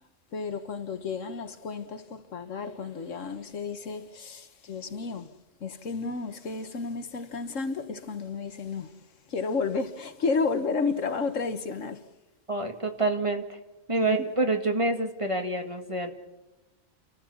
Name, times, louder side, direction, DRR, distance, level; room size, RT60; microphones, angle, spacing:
voice 1, 0.3-5.3 5.6-12.0 14.0-14.2, left 4 dB, 75° left, 1.6 m, -32 dB
voice 2, 12.5-13.4 13.9-16.1, right 2 dB, 25° right, 2.0 m, -27 dB
29.5 x 14.0 x 7.2 m
omnidirectional pair, 1.3 m